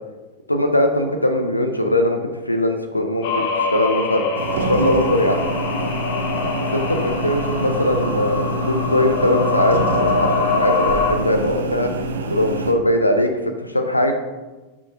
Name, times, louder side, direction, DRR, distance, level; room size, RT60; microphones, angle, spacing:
voice 1, 0.5-2.2 2.5-4.3 4.7-5.4 6.7-11.9 12.3-14.1, left 1 dB, 85° left, 6 dB, 0.6 m, -20 dB
sound 1, 3.2-11.1, left 5 dB, 50° left, 0.8 m, -24 dB
sound 2, 4.3-12.7, right 2 dB, 65° right, 0.6 m, -26 dB
6.5 x 5.6 x 2.6 m, 1.2 s
figure-of-eight pair, 90°, 0 cm